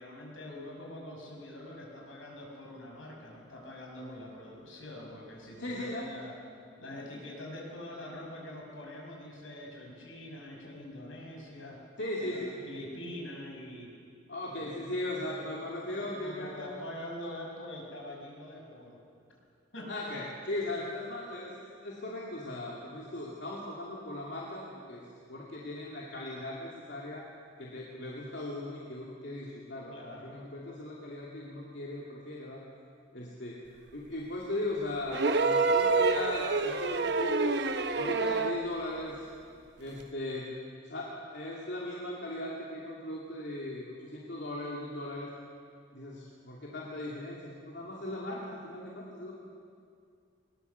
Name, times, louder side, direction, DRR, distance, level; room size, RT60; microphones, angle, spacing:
voice 1, 0.0-6.3 6.8-11.8 12.2-13.9 14.5-14.7 15.3-15.6 15.9-19.0 19.7-20.1 29.9-30.4, left 1 dB, 80° left, -1 dB, 5.8 m, -44 dB
voice 2, 5.6-6.1 12.0-12.6 14.3-16.7 19.9-21.5 21.8-27.2 27.6-32.6 33.1-33.6 33.9-37.7 38.0-39.3 39.8-40.5 40.8-45.3 45.9-49.3, left 1 dB, 60° left, -4 dB, 2.5 m, -38 dB
sound 1, 35.1-38.7 40.0-40.1, right 3 dB, 55° right, 1.0 m, -27 dB
21.0 x 21.0 x 7.0 m, 2.3 s
head